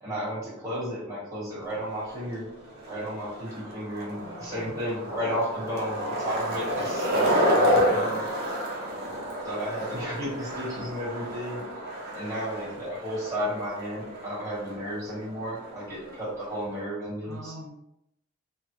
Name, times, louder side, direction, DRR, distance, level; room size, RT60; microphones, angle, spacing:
voice 1, 0.0-2.4 2.9-8.2 9.4-11.6 12.1-17.5, equal, 15° right, -8 dB, 1.3 m, -33 dB
Skateboard, 1.6-16.8, equal, 50° right, 0.7 m, -30 dB
voice 2, 4.2-4.8 8.8-9.3 17.2-17.7, right 1 dB, 85° right, -3 dB, 0.8 m, -46 dB
3.3 x 2.0 x 2.9 m, 0.84 s
head